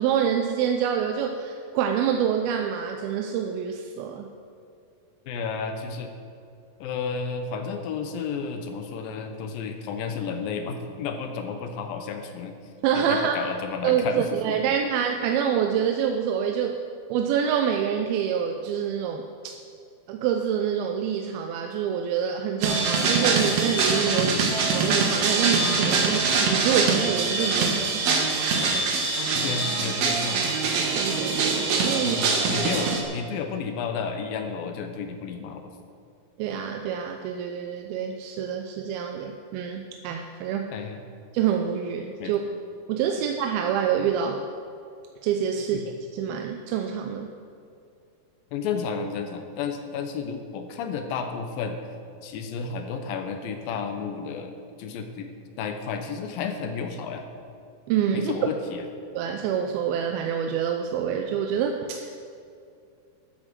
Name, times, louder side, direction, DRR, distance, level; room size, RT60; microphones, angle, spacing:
voice 1, 0.0-4.3 12.8-13.4 13.8-16.8 17.1-19.5 20.1-24.4 24.7-28.1 30.9-32.2 32.6-32.7 36.4-40.7 41.3-42.4 42.9-44.4 45.2-45.8 46.1-47.3 57.9-58.3 59.2-62.1, right 8 dB, 85° right, 4 dB, 2.5 m, -26 dB
voice 2, 5.3-6.1 6.8-12.6 12.9-14.7 24.2-24.5 29.3-30.4 32.0-35.7 40.7-41.0 42.2-42.3 45.7-45.8 48.5-51.8 52.2-55.3 55.6-57.3 58.1-58.9, left 5 dB, 75° left, 6 dB, 2.6 m, -32 dB
sound 1, 22.6-33.0, right 4 dB, 60° right, 2.2 m, -24 dB
12.5 x 8.8 x 6.4 m, 2.5 s
omnidirectional pair, 4.3 m